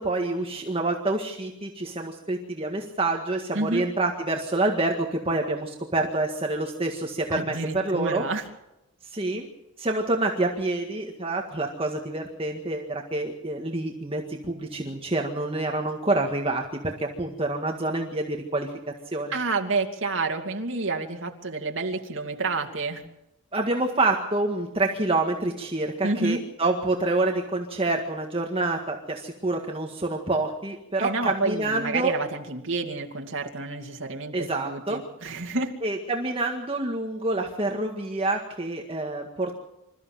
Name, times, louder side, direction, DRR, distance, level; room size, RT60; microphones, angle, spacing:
voice 1, 0.0-8.2 9.0-9.5 9.8-18.7 19.1-19.3 23.5-32.1 34.3-35.0 35.8-39.6, right 2 dB, 25° right, 2 dB, 1.8 m, -27 dB
voice 2, 3.5-3.8 7.3-8.4 19.3-23.0 26.0-26.4 31.0-35.7, right 3 dB, 60° right, 2 dB, 2.7 m, -29 dB
26.5 x 14.0 x 7.7 m, 0.89 s
head